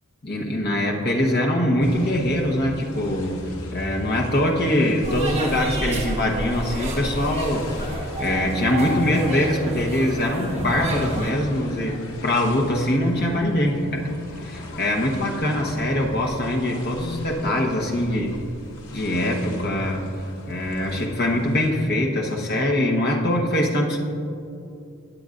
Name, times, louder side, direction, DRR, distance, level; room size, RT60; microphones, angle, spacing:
voice 1, 0.2-3.4 3.7-11.9 12.2-18.4 18.9-20.0 20.5-24.0, left 1 dB, 45° left, 0 dB, 1.1 m, -23 dB
sound 1, 1.8-21.7, left 1 dB, 90° left, 1.5 m, -38 dB
sound 2, 5.0-11.3, right 1 dB, 30° right, 1.4 m, -31 dB
17.5 x 8.0 x 2.5 m, 2.6 s
head